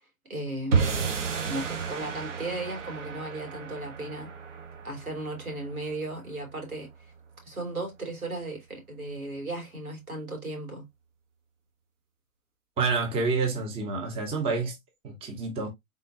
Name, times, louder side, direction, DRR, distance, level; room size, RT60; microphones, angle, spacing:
voice 1, 0.3-0.8 1.4-4.3 4.8-7.1 7.4-10.8, right 2 dB, 85° right, 2.8 m, -36 dB
sound 1, 0.7-7.1, right 5 dB, 60° right, 1.4 m, -32 dB
voice 2, 12.8-14.8 15.0-15.7, right 4 dB, 15° right, 0.9 m, -28 dB
4.2 x 3.8 x 2.6 m
figure-of-eight pair, 110°, 42 cm